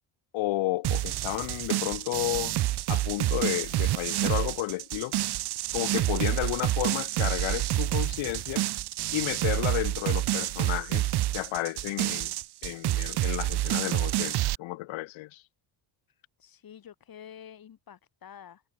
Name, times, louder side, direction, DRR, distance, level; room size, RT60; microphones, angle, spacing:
voice 1, 0.3-2.6 2.9-5.1 5.7-8.7 9.1-12.3 12.6-15.4, left 18 dB, 70° left, 0.8 m, -32 dB
sound 1, 0.8-14.6, right 15 dB, 50° right, 0.8 m, -28 dB
voice 2, 16.1-18.6, left 9 dB, 45° left, 4.2 m, -49 dB
cardioid pair, 135°, 49 cm